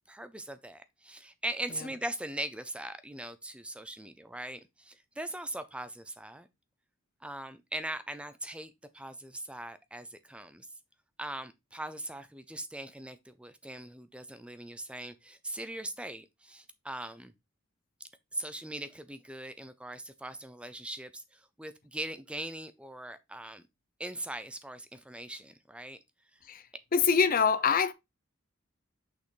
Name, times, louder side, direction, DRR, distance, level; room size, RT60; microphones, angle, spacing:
voice 1, 0.1-6.5 7.2-10.7 11.2-17.3 18.3-23.6 24.0-26.0 26.3-26.4, right 1 dB, 5° right, 0.5 m, -40 dB
voice 2, 26.9-27.9, left 6 dB, 45° left, 0.6 m, -24 dB
6.5 x 5.5 x 3.2 m
head